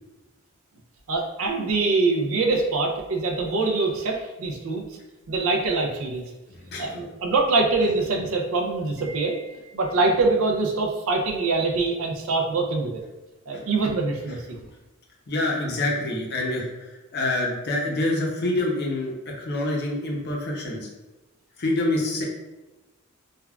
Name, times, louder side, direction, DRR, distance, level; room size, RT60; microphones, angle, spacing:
voice 1, 1.1-4.8 5.3-6.2 6.8-9.4 9.7-13.0 13.5-14.6, right 3 dB, 70° right, 1 dB, 0.4 m, -24 dB
voice 2, 6.5-7.0 13.5-13.7 15.3-20.9 21.6-22.2, left 2 dB, 50° left, -1 dB, 0.6 m, -26 dB
Wind chime, 9.0-10.4, right 2 dB, 55° right, 1.1 m, -48 dB
3.4 x 2.2 x 2.3 m, 1.1 s
head